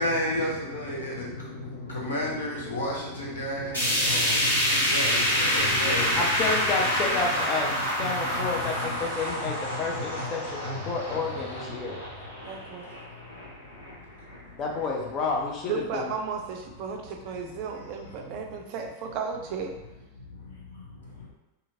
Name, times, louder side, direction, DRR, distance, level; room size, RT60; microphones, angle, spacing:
voice 1, 0.0-6.3 7.0-8.9 9.4-10.8 12.4-12.6 13.2-14.6 17.7-17.8 18.2-18.4 20.2-21.3, left 1 dB, 65° left, -3 dB, 0.8 m, -34 dB
sound 1, 3.7-13.9 14.3-14.4 14.8-14.9 15.7-15.8, equal, 85° left, 1.5 m, -27 dB
voice 2, 6.2-12.0 14.6-16.1, left 4 dB, 30° left, -1 dB, 0.5 m, -30 dB
voice 3, 12.4-12.9 15.7-19.7, right 6 dB, 45° right, 3 dB, 0.4 m, -34 dB
2.8 x 2.7 x 2.6 m, 1.0 s
figure-of-eight pair, 90°, 0 cm